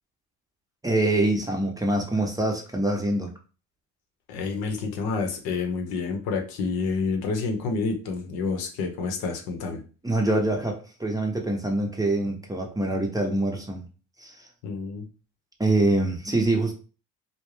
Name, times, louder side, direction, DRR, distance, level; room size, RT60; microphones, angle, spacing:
voice 1, 0.8-3.3 10.0-13.8 14.2-14.4 15.6-16.7, right 2 dB, 10° right, 2 dB, 0.7 m, -25 dB
voice 2, 4.3-9.8 14.6-15.1, left 4 dB, 75° left, 3 dB, 0.8 m, -28 dB
2.5 x 2.1 x 3.2 m, 0.35 s
supercardioid pair, 75°, 36 cm